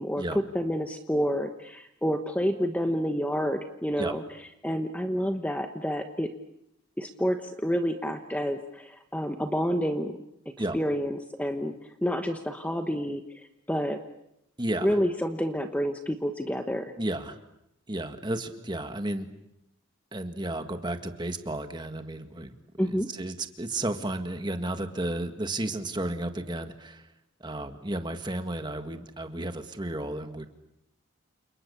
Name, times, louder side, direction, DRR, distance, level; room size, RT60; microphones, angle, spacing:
voice 1, 0.0-4.2 4.6-6.3 7.0-10.2 10.7-11.7 12.0-13.2 13.7-14.0 14.8-16.9 22.8-23.1, equal, 5° left, 6 dB, 1.1 m, -28 dB
voice 2, 14.6-15.0 17.0-17.4 17.9-19.3 20.1-27.1 27.4-30.4, right 1 dB, 20° right, 7 dB, 1.8 m, -33 dB
29.5 x 28.0 x 7.0 m, 0.81 s
head